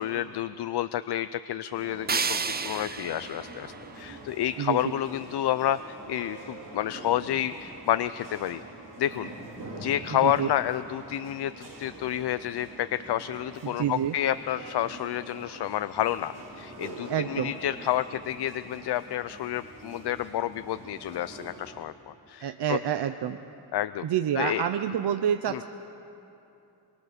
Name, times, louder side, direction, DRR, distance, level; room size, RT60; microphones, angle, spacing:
voice 1, 0.0-2.4 2.6-8.6 9.0-9.3 9.8-22.8 23.7-24.0 24.3-24.6 25.5-25.6, left 12 dB, 70° left, 13 dB, 0.5 m, -30 dB
sound 1, 1.8-21.7, right 2 dB, 50° right, 5.0 m, -44 dB
sound 2, 2.1-5.1, right 5 dB, 25° right, 0.5 m, -33 dB
voice 2, 10.1-10.5 13.6-14.2 17.1-17.5 22.4-23.4 24.0-25.6, right 9 dB, 70° right, 8 dB, 0.7 m, -28 dB
24.5 x 23.0 x 6.7 m, 2.8 s
wide cardioid pair, 160°, 42 cm